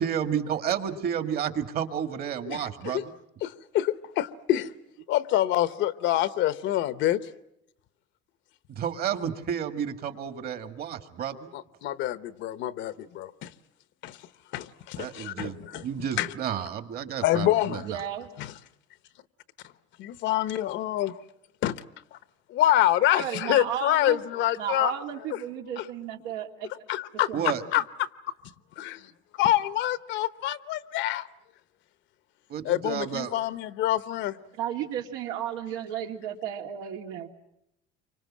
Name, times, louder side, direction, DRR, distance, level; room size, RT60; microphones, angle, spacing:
voice 1, 0.0-3.1 8.7-11.5 15.0-18.0 27.3-27.6 32.5-33.3, right 8 dB, 50° right, 1.9 m, -31 dB
voice 2, 3.4-4.7 5.1-7.2 11.5-13.5 14.0-14.2 14.5-15.8 16.2-16.3 17.2-17.8 18.4-18.5 20.0-21.1 21.6-21.8 22.1-22.2 22.5-24.9 25.8-25.9 26.9-27.3 27.7-28.1 28.8-29.1 29.4-31.3 32.6-34.3, left 13 dB, 60° left, 1.0 m, -26 dB
voice 3, 17.9-18.3 23.1-24.2 24.6-26.8 27.3-27.6 34.6-37.3, right 10 dB, 90° right, 2.5 m, -34 dB
28.0 x 25.0 x 7.4 m
cardioid pair, 145°, 21 cm